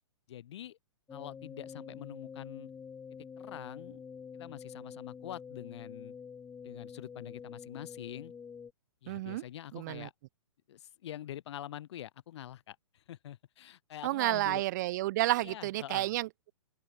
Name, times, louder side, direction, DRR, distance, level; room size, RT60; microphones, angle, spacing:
voice 1, 0.3-0.8 1.1-2.7 3.4-4.0 4.3-6.1 6.6-8.3 9.0-10.1 10.7-14.6 15.4-16.2, left 12 dB, 55° left, 1.7 m, -45 dB
sound 1, 1.1-8.7, left 6 dB, 10° left, 1.6 m, -47 dB
voice 2, 9.1-9.4 9.7-10.1 14.0-16.5, right 17 dB, 35° right, 0.3 m, -31 dB
open air
figure-of-eight pair, 125°, 17 cm